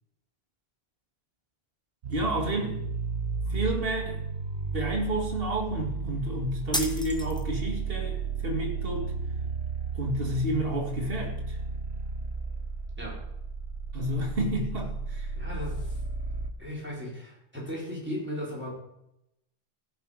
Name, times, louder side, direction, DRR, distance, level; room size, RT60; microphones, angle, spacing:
sound 1, 2.0-16.5, right 5 dB, 85° right, 1.2 m, -34 dB
voice 1, 2.1-2.9 3.5-4.3 4.7-9.1 10.0-11.6 13.9-15.3, right 1 dB, 65° right, 1 dB, 2.3 m, -30 dB
sound 2, 6.7-7.8, equal, 5° left, 1.0 m, -33 dB
voice 2, 15.4-16.0 16.6-18.7, equal, 10° right, -4 dB, 4.0 m, -36 dB
16.0 x 6.7 x 4.8 m, 0.84 s
omnidirectional pair, 1.0 m